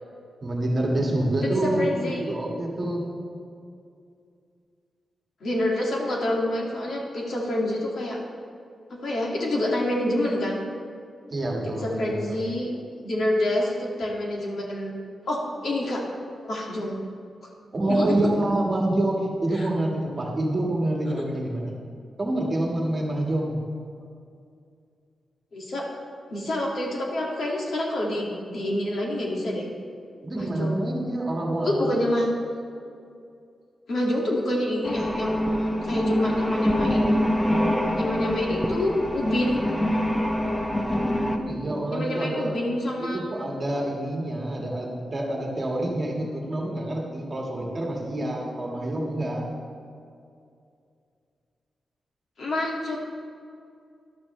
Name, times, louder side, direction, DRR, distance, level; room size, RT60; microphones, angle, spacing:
voice 1, 0.4-3.1 11.3-12.4 17.7-21.7 22.2-23.6 30.2-32.0 41.3-42.6 43.0-49.5, right 1 dB, 30° right, -1 dB, 1.7 m, -27 dB
voice 2, 1.6-2.3 5.4-8.2 9.0-10.6 11.8-12.7 13.0-14.9 15.3-16.0 16.4-17.0 17.9-18.1 19.5-19.7 25.5-25.9 26.3-29.7 30.3-30.7 31.6-32.3 33.9-37.3 38.0-39.6 41.9-43.2 52.4-53.0, left 1 dB, 60° left, -2 dB, 2.1 m, -27 dB
sound 1, 34.8-41.4, equal, 5° left, 0.8 m, -25 dB
13.5 x 11.5 x 3.2 m, 2.4 s
wide cardioid pair, 170°, 0 cm